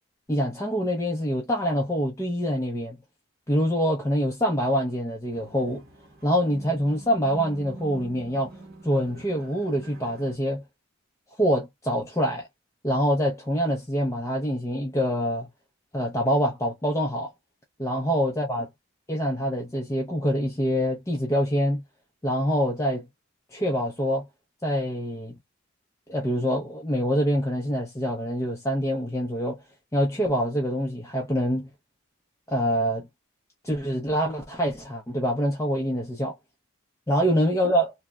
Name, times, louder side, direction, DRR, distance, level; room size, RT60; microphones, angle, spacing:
voice 1, 0.3-3.0 3.5-5.8 6.2-10.6 11.4-12.5 12.8-15.5 15.9-17.3 17.8-18.7 19.1-21.8 22.2-23.1 23.5-24.3 24.6-25.4 26.1-29.6 29.9-31.7 32.5-33.1 33.6-36.3 37.1-37.9, equal, 15° left, 0.5 m, -25 dB
sound 1, 5.3-10.3, right 2 dB, 45° right, 1.0 m, -45 dB
3.2 x 2.1 x 2.3 m
head